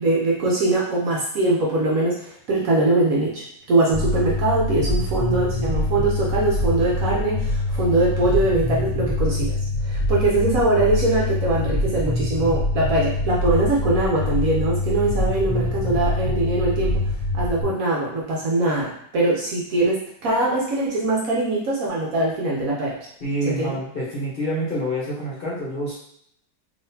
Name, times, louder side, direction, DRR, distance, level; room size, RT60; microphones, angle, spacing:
voice 1, 0.0-9.6 9.8-17.0 17.3-23.0 23.5-23.7, right 2 dB, 60° right, -4 dB, 1.0 m, -22 dB
sound 1, 3.9-17.6, left 2 dB, 5° right, 1.1 m, -24 dB
voice 2, 23.2-26.0, equal, 40° left, -7 dB, 1.0 m, -27 dB
3.8 x 3.0 x 2.7 m, 0.70 s
omnidirectional pair, 1.9 m